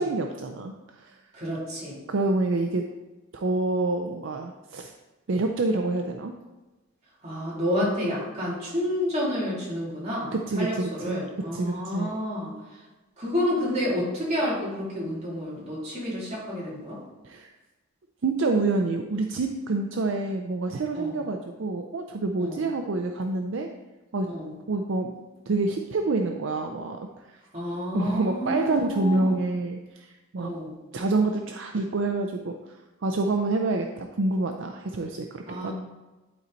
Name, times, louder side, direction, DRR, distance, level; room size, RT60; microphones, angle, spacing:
voice 1, 0.0-1.2 2.1-2.9 3.3-4.9 5.3-6.3 10.3-11.2 11.5-12.1 17.2-17.5 18.2-23.7 24.1-24.3 24.7-25.2 25.5-27.3 27.9-30.5 30.9-32.6 33.0-35.7, right 3 dB, 60° right, 4 dB, 0.5 m, -27 dB
voice 2, 1.3-2.0 7.2-12.8 13.2-17.0 20.9-21.2 22.4-22.6 24.2-24.5 27.5-29.4 30.4-30.7 35.5-35.7, left 1 dB, 30° right, -7 dB, 2.9 m, -30 dB
11.0 x 4.4 x 4.0 m, 1.1 s
head